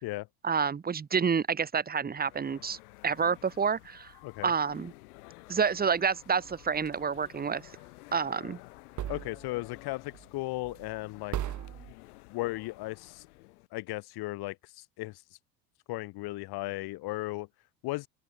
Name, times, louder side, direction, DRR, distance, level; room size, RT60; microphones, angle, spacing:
voice 1, 0.4-2.8 3.0-4.1 4.4-4.9 5.5-7.6 8.1-8.6, right 6 dB, 20° right, 1.5 m, -28 dB
sound 1, 2.0-13.7, left 24 dB, 75° left, 6.5 m, -53 dB
sound 2, 6.4-7.3 9.0-9.8 10.1-10.4 10.6-11.0 11.3-11.9, right 11 dB, 40° right, 2.3 m, -38 dB
voice 2, 9.1-11.4 12.3-13.3 13.7-15.2 15.9-17.5 17.8-18.1, left 20 dB, 55° left, 2.0 m, -36 dB
open air
hypercardioid pair, 95°, 45 cm